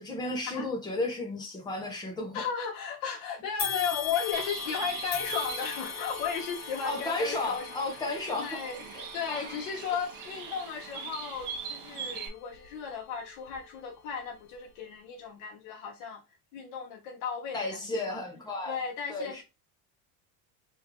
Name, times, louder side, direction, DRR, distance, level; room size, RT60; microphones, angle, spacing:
voice 1, 0.0-2.4 6.8-9.6 17.5-18.8 19.1-19.4, left 2 dB, 10° left, 0.8 m, -34 dB
voice 2, 2.3-7.7 8.4-8.8 9.1-16.2 16.5-18.2 18.7-19.4, left 7 dB, 75° left, 1.2 m, -35 dB
sound 1, 3.6-12.9 13.4-13.6 14.5-14.6, left 8 dB, 45° left, 0.8 m, -40 dB
Bird, 4.3-12.3, right 6 dB, 50° right, 0.8 m, -41 dB
3.2 x 2.6 x 3.6 m
cardioid pair, 180°, 41 cm